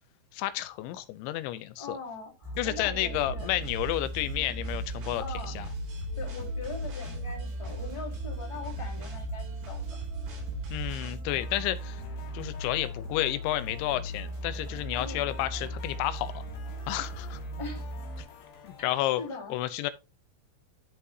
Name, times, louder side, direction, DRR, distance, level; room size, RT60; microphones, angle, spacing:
voice 1, 0.3-2.0 2.6-5.2 5.6-5.7 10.7-12.0 12.3-16.4 16.9-17.4 18.6-19.2 19.5-19.9, left 15 dB, 85° left, 3.0 m, -31 dB
voice 2, 1.8-3.5 5.2-5.5 6.1-9.8 15.0-15.3 17.6-17.9 19.2-19.6, left 3 dB, 10° left, 2.4 m, -41 dB
sound 1, 2.4-18.2, equal, 75° right, 5.1 m, -38 dB
sound 2, 3.1-11.1, right 4 dB, 55° right, 5.2 m, -40 dB
sound 3, 11.3-19.3, left 7 dB, 65° left, 4.7 m, -51 dB
12.5 x 5.5 x 2.7 m
omnidirectional pair, 5.2 m